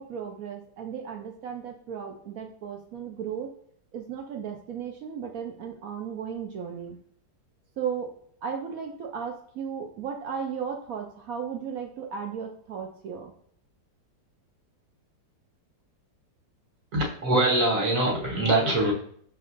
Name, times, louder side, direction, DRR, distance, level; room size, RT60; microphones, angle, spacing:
voice 1, 0.0-3.5 3.9-7.0 7.8-8.1 8.4-13.3, right 7 dB, 75° right, 3 dB, 0.8 m, -35 dB
voice 2, 16.9-18.9, right 2 dB, 55° right, -1 dB, 1.2 m, -23 dB
5.9 x 3.0 x 2.5 m, 0.62 s
omnidirectional pair, 2.0 m